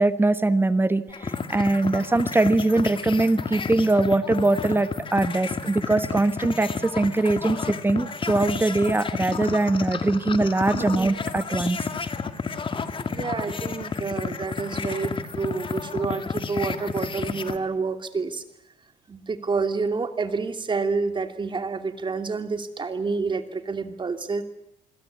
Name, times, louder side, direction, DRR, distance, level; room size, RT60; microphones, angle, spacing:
voice 1, 0.0-11.8, right 2 dB, 15° right, 12 dB, 1.4 m, -22 dB
sound 1, 1.1-17.6, left 5 dB, 30° left, 2.0 m, -31 dB
voice 2, 10.7-11.1 13.1-18.4 19.1-24.4, right 4 dB, 30° right, 8 dB, 2.8 m, -28 dB
28.0 x 21.0 x 8.5 m, 0.80 s
cardioid pair, 110°, 17 cm